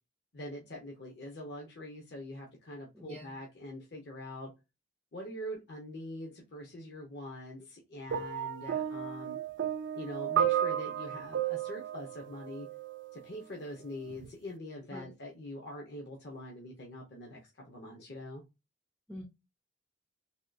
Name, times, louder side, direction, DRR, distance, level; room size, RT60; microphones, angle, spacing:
voice 1, 0.3-4.5 5.1-9.4 9.9-12.7 13.1-18.4, left 1 dB, 55° left, 0.7 m, -44 dB
voice 2, 2.9-3.3 14.9-15.1 19.1-19.3, left 1 dB, 5° left, 0.4 m, -45 dB
sound 1, 8.1-13.2 14.1-14.3, right 9 dB, 65° right, 0.3 m, -33 dB
3.5 x 2.3 x 2.4 m
head